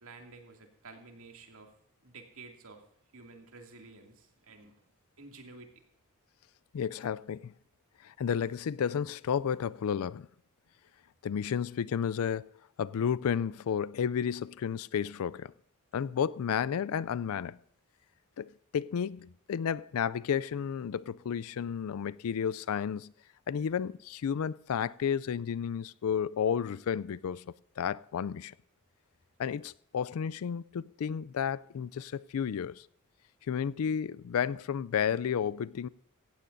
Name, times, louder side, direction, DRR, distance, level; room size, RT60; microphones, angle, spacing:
voice 1, 0.0-1.7 2.0-2.8 3.1-4.8 5.2-5.7, right 3 dB, 65° right, 2.4 m, -51 dB
voice 2, 6.7-7.5 8.0-10.3 11.2-12.5 12.8-15.5 15.9-17.6 18.4-23.1 23.5-27.4 27.8-28.5 29.4-32.9 33.5-35.9, left 7 dB, 65° left, 0.4 m, -32 dB
16.5 x 15.0 x 2.6 m
head